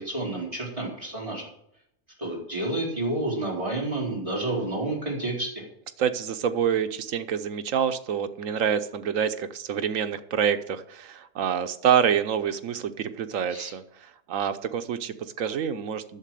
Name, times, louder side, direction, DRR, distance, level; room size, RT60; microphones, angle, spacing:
voice 1, 0.0-1.5 2.2-5.5 13.5-13.7, right 2 dB, 25° right, -4 dB, 4.3 m, -30 dB
voice 2, 6.0-16.2, right 8 dB, 80° right, 10 dB, 1.2 m, -27 dB
11.0 x 7.4 x 7.6 m, 0.77 s
omnidirectional pair, 1.3 m